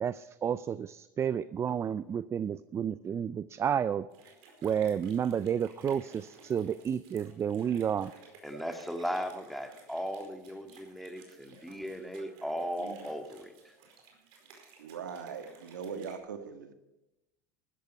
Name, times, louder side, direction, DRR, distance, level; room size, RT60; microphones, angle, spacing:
voice 1, 0.0-4.3 4.6-8.1, right 8 dB, 30° right, 16 dB, 0.4 m, -31 dB
sound 1, 4.1-16.2, right 4 dB, 60° right, 4.8 m, -57 dB
voice 2, 8.4-13.5, equal, ahead, 5 dB, 1.9 m, -37 dB
voice 3, 12.5-13.1 14.8-16.7, right 6 dB, 85° right, 8 dB, 1.6 m, -41 dB
14.5 x 13.0 x 5.6 m, 0.99 s
hypercardioid pair, 90°, 10 cm